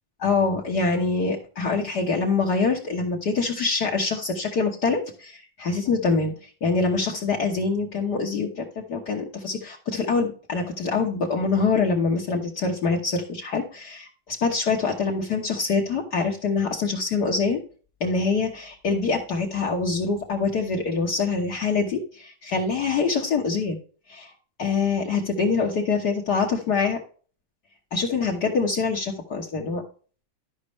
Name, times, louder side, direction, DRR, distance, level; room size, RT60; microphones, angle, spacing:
voice 1, 0.2-17.6 18.0-23.8 24.1-24.3 24.6-27.0 27.9-29.8, left 4 dB, 75° left, 0 dB, 0.9 m, -25 dB
13.0 x 5.4 x 3.1 m, 0.40 s
omnidirectional pair, 3.5 m